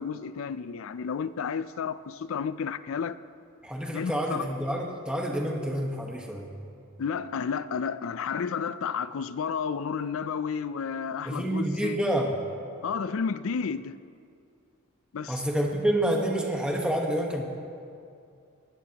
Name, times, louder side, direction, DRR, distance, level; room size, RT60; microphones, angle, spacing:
voice 1, 0.0-3.2 3.9-4.4 7.0-12.0 12.8-14.0 15.1-15.4, left 6 dB, 65° left, 0.4 m, -31 dB
voice 2, 3.6-6.5 11.3-12.3 15.3-17.4, right 1 dB, 5° right, 1.2 m, -28 dB
20.5 x 16.0 x 2.9 m
head